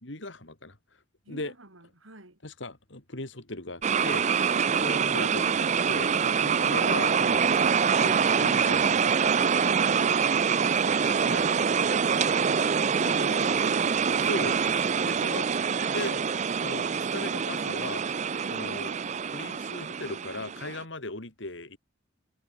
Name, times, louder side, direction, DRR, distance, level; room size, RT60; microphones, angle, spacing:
voice 1, 0.0-0.8 1.3-1.5 2.4-4.3 4.8-9.1 11.2-11.5 12.9-13.7 14.2-15.5 15.9-16.2 16.6-18.0 18.5-18.9 19.3-21.8, left 2 dB, 65° left, 3.2 m, -38 dB
voice 2, 1.2-2.4 4.5-4.9 6.4-6.8 8.5-8.8 9.7-10.9 16.8-17.0 18.3-18.6, right 1 dB, 85° right, 5.6 m, -51 dB
sound 1, 3.8-20.8, right 6 dB, 35° right, 0.4 m, -25 dB
head